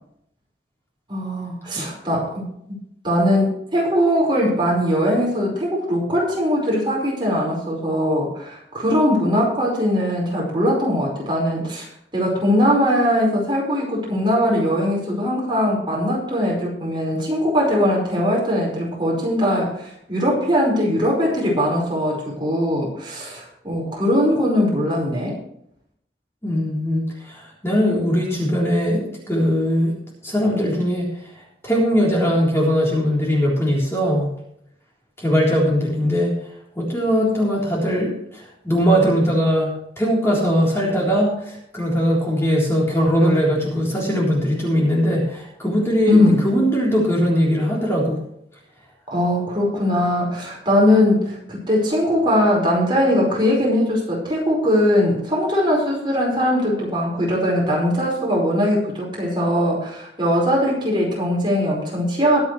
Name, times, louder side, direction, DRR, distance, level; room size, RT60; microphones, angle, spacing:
voice 1, 1.1-2.8 3.0-11.9 12.1-25.4 46.1-46.4 49.1-62.4, equal, 25° right, -3 dB, 5.0 m, -20 dB
voice 2, 26.4-29.9 30.2-31.1 31.3-34.3 35.2-36.3 36.8-46.2 46.4-48.2, equal, 15° left, -5 dB, 3.7 m, -20 dB
22.0 x 8.3 x 3.3 m, 0.72 s
head